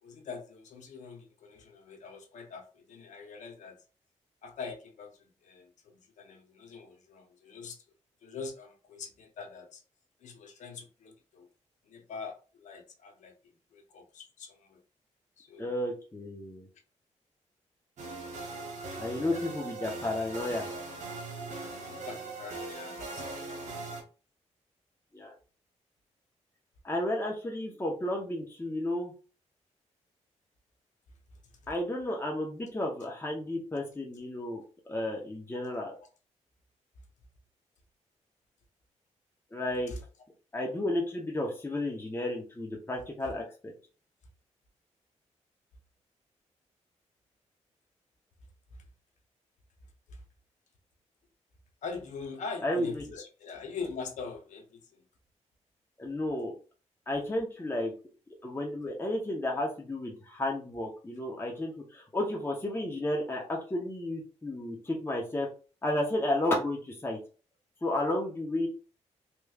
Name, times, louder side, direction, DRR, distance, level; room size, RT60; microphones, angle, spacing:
voice 1, 0.0-3.8 4.4-7.8 8.2-9.8 10.2-11.5 11.8-13.3 13.7-14.8 15.4-15.8 19.3-19.5 21.7-23.9 39.9-40.0 50.1-50.2 51.8-55.0, left 4 dB, 75° left, 0.8 m, -43 dB
voice 2, 15.6-16.7 19.0-20.7 25.1-25.3 26.8-29.1 31.7-35.9 39.5-39.9 40.5-43.7 52.6-53.0 56.0-56.6 57.1-57.9 58.4-65.5 65.8-67.2 67.8-68.7, left 1 dB, 20° left, 1.0 m, -32 dB
sound 1, 18.0-24.0, right 3 dB, 70° right, 1.1 m, -40 dB
3.2 x 3.1 x 2.4 m
cardioid pair, 70°, 12 cm